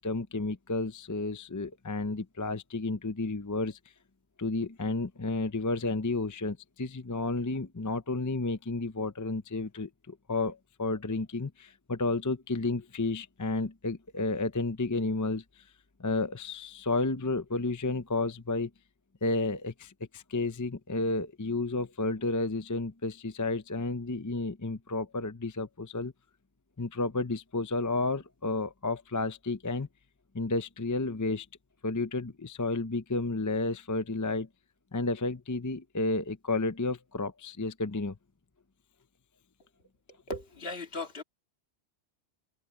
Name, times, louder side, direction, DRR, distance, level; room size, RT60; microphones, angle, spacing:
voice 1, 0.0-3.8 4.4-15.6 16.0-18.7 19.2-26.1 26.8-29.9 30.3-31.5 31.8-34.5 34.9-38.2, left 3 dB, 20° left, 0.6 m, -31 dB
voice 2, 40.3-41.2, left 2 dB, 60° left, 2.4 m, -37 dB
omnidirectional pair, 1.1 m